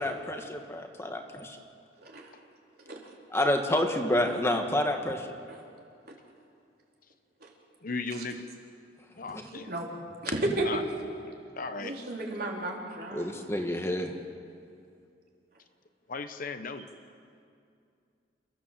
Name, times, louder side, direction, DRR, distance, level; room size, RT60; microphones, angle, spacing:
voice 1, 0.0-1.6 3.3-5.3 9.3-9.4 13.1-14.1, left 1 dB, 15° left, 4 dB, 1.4 m, -29 dB
voice 2, 7.8-8.5 9.2-9.7 10.6-10.8 11.6-12.0 16.1-16.9, left 4 dB, 50° left, 8 dB, 1.1 m, -36 dB
voice 3, 10.2-10.7 11.8-13.3, right 1 dB, 55° right, -1 dB, 3.8 m, -33 dB
29.0 x 14.5 x 7.5 m, 2.4 s
head